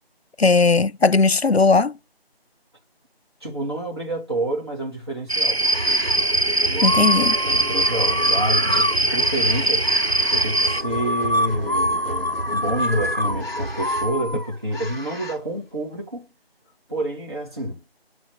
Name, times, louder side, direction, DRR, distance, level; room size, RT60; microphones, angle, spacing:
voice 1, 0.4-2.0 6.8-7.4, left 4 dB, 85° left, 0.7 m, -17 dB
voice 2, 3.4-5.6 6.6-7.0 7.4-9.9 10.3-16.3 16.9-17.8, right 1 dB, 25° right, 2.7 m, -28 dB
sound 1, 5.3-10.8, right 2 dB, 85° right, 1.5 m, -21 dB
sound 2, 5.6-14.1, right 2 dB, 65° right, 1.2 m, -33 dB
sound 3, 5.7-6.3 6.8-15.4, left 1 dB, 45° left, 3.8 m, -27 dB
11.0 x 6.4 x 7.3 m
figure-of-eight pair, 170°, 31 cm